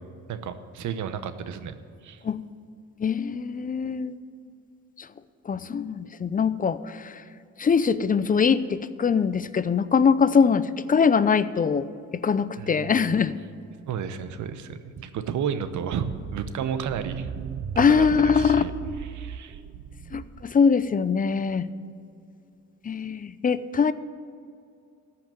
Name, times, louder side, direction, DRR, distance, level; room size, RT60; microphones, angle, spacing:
voice 1, 0.3-1.7 2.0-2.2 12.6-13.2 13.9-17.3 17.8-18.7 19.0-19.6, right 7 dB, 75° right, 11 dB, 1.0 m, -32 dB
voice 2, 3.0-4.1 5.5-7.1 7.6-11.9 12.2-13.3 17.8-18.6 20.1-21.6 22.9-23.9, left 6 dB, 30° left, 15 dB, 0.5 m, -22 dB
sound 1, 15.9-20.6, right 8 dB, 55° right, 0.6 m, -35 dB
13.5 x 5.8 x 9.0 m, 2.4 s
cardioid pair, 90°, 30 cm